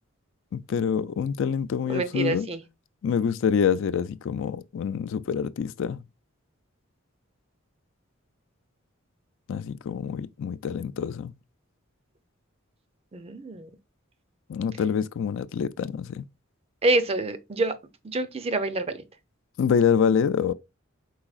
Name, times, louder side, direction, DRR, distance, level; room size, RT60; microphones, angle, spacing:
voice 1, 0.5-2.5 3.0-6.0 9.5-11.3 14.5-16.2 19.6-20.5, left 7 dB, 65° left, 0.3 m, -26 dB
voice 2, 1.9-2.6 13.1-13.7 16.8-17.7 18.0-19.0, right 2 dB, 30° right, 0.5 m, -27 dB
4.7 x 3.9 x 2.4 m
head